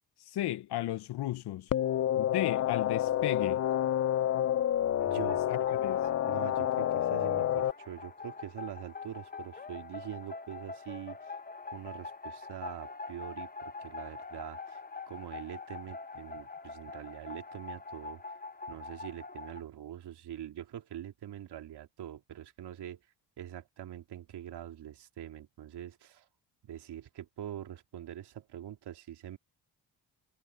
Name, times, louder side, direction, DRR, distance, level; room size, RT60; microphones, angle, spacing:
voice 1, 0.2-1.7 2.2-3.6 5.5-6.1, left 14 dB, 75° left, 0.8 m, -34 dB
sound 1, 1.7-7.7, left 11 dB, 40° left, 0.4 m, -29 dB
sound 2, 5.0-19.6, left 4 dB, 20° left, 1.2 m, -44 dB
voice 2, 5.0-5.4 5.7-5.8 6.3-11.2 11.7-14.8 15.1-18.4 18.7-23.0 23.4-26.3 26.6-29.4, right 11 dB, 75° right, 3.1 m, -44 dB
cardioid pair, 70°, 40 cm